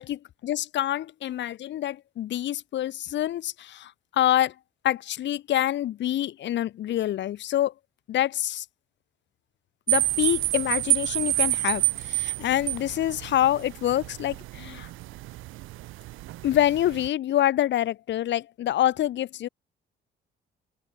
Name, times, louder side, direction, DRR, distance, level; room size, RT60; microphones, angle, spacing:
voice 1, 0.0-4.5 4.8-7.7 8.1-8.6 9.9-14.9 16.4-19.5, left 12 dB, 65° left, 0.8 m, -26 dB
sound 1, 9.9-17.1, right 18 dB, 90° right, 0.6 m, -29 dB
open air
cardioid pair, 90°, 20 cm